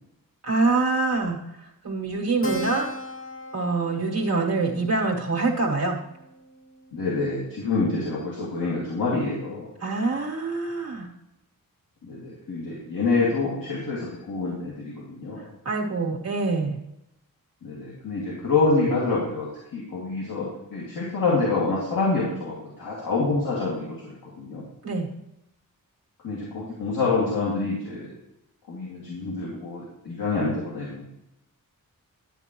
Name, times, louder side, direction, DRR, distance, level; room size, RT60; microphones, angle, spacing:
voice 1, 0.4-1.4 1.8-2.9 3.5-6.0 9.8-11.1 15.6-16.8 24.8-25.1, right 3 dB, 45° right, -3 dB, 1.3 m, -25 dB
Keyboard (musical), 2.4-7.4, equal, 35° left, 1.0 m, -38 dB
voice 2, 6.9-9.7 12.0-15.5 17.6-19.5 19.7-24.6 26.2-28.2 28.7-31.0, left 3 dB, 80° left, -6 dB, 2.4 m, -27 dB
10.5 x 9.2 x 3.1 m, 0.87 s
wide cardioid pair, 115°, 35 cm